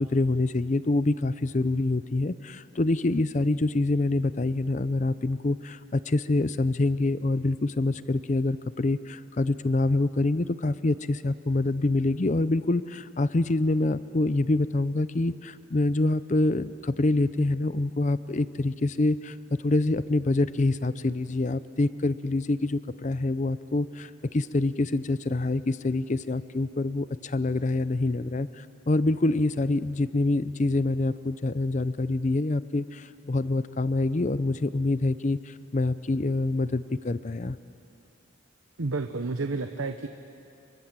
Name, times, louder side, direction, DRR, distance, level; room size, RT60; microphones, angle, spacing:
voice 1, 0.0-19.4 19.6-37.6, left 2 dB, 35° left, 14 dB, 0.5 m, -26 dB
voice 2, 38.8-40.1, right 3 dB, 90° right, 6 dB, 1.1 m, -30 dB
30.0 x 24.5 x 7.5 m, 2.7 s
head